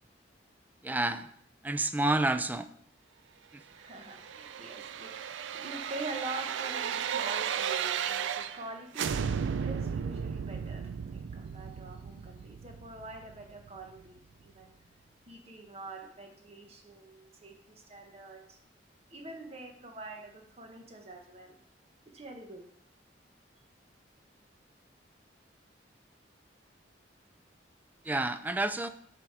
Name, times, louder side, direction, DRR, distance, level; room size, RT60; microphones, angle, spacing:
voice 1, 0.8-1.3 1.6-2.7 3.5-3.6 28.0-28.9, right 2 dB, 10° right, 10 dB, 0.3 m, -29 dB
voice 2, 3.7-14.7 15.3-18.6 19.1-21.6 22.1-22.6, right 2 dB, 35° right, 3 dB, 1.1 m, -45 dB
sound 1, 3.9-8.7 8.9-13.8 14.2-14.3, right 7 dB, 90° right, 0.4 m, -35 dB
6.9 x 5.0 x 4.7 m, 0.68 s
head